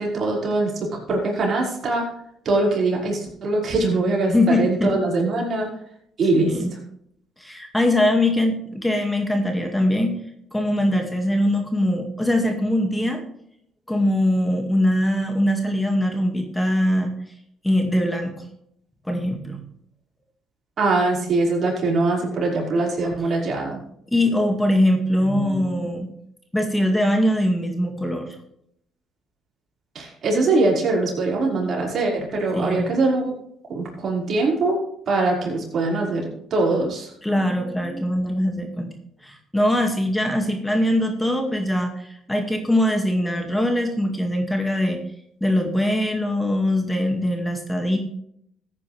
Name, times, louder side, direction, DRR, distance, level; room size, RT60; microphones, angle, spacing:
voice 1, 0.0-2.0 2.4-5.7 6.2-6.5 20.8-23.8 29.9-33.3 33.7-34.8 35.1-37.1, right 2 dB, 55° right, -2 dB, 5.2 m, -22 dB
voice 2, 4.3-5.0 6.4-6.7 7.4-10.2 10.5-13.2 13.9-17.1 17.6-18.3 19.1-19.7 23.2-23.4 24.1-26.1 26.5-28.4 32.5-32.9 37.2-38.9 39.2-45.0 45.4-48.0, left 1 dB, 10° left, 3 dB, 2.1 m, -22 dB
14.5 x 9.6 x 3.4 m, 0.71 s
supercardioid pair, 75°, 0 cm